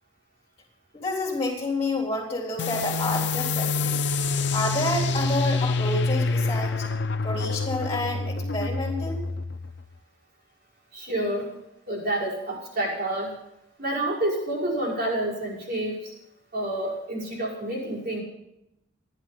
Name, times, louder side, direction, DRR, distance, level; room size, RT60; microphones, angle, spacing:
voice 1, 0.9-4.0 4.5-6.9 7.2-9.2, left 2 dB, 30° left, -5 dB, 3.6 m, -29 dB
sound 1, 2.6-9.8, left 3 dB, 60° left, 0.6 m, -26 dB
voice 2, 10.9-11.5 11.9-13.4 13.8-16.1 16.5-18.2, right 1 dB, 50° right, -5 dB, 5.4 m, -28 dB
14.5 x 11.5 x 5.8 m, 0.85 s
head